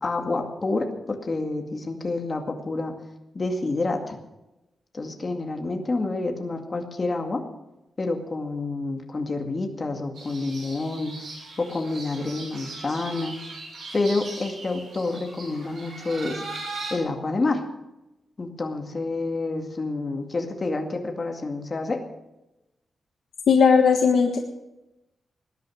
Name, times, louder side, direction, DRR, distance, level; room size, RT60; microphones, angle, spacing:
voice 1, 0.0-2.9 3.3-4.2 4.9-7.4 8.0-11.1 11.6-13.3 13.9-16.4 16.9-17.6 18.4-22.0, left 3 dB, 30° left, 3 dB, 2.2 m, -28 dB
sound 1, 10.1-17.0, right 3 dB, 70° right, 7.3 m, -39 dB
voice 2, 23.5-24.4, left 5 dB, 75° left, 3 dB, 1.5 m, -17 dB
19.0 x 10.5 x 6.4 m, 0.96 s
wide cardioid pair, 170°, 0 cm